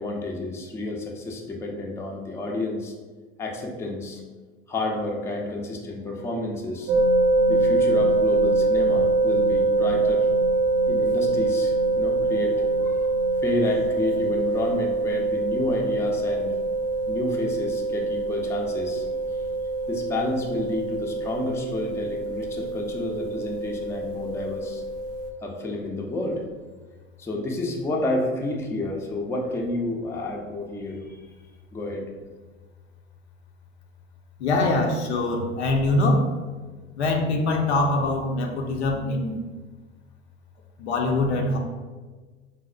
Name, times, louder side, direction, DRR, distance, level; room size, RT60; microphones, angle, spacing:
voice 1, 0.0-2.9 3.4-4.2 4.7-6.9 7.5-10.3 10.9-13.1 13.4-16.5 17.1-19.1 19.9-24.8 25.4-26.7 27.2-31.2 31.7-32.0, left 2 dB, 10° left, 0 dB, 0.4 m, -30 dB
sound 1, 6.9-25.3, right 3 dB, 60° right, 0.5 m, -24 dB
voice 2, 34.4-36.2 37.0-39.3 40.8-41.6, left 2 dB, 85° left, 1 dB, 0.6 m, -23 dB
4.0 x 2.0 x 2.4 m, 1.4 s
hypercardioid pair, 85°, 32 cm